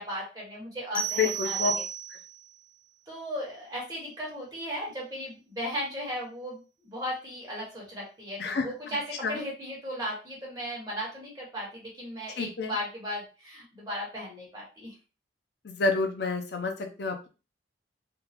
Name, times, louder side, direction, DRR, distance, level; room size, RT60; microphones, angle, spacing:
voice 1, 0.0-1.8 3.1-14.9, equal, 20° right, -5 dB, 1.5 m, -36 dB
sound 1, 0.9-2.5, right 7 dB, 25° left, 0.9 m, -32 dB
voice 2, 1.2-1.7 8.4-8.7 9.2-9.4 12.4-12.8 15.6-17.3, left 4 dB, 60° left, 4 dB, 0.5 m, -28 dB
3.7 x 2.3 x 2.9 m, 0.32 s
head